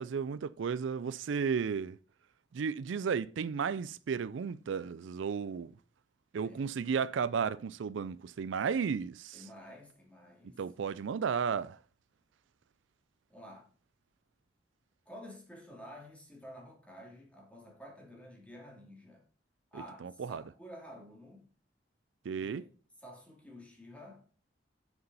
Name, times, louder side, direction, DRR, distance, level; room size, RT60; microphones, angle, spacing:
voice 1, 0.0-2.0 2.5-5.7 6.3-9.4 10.4-11.8 20.0-20.4 22.3-22.6, right 6 dB, 75° right, 0.4 m, -33 dB
voice 2, 6.4-7.0 9.3-10.6 13.3-13.7 15.1-19.2 19.7-21.5 22.3-22.7 23.0-24.2, equal, 5° left, 2.7 m, -51 dB
6.9 x 6.8 x 5.4 m
head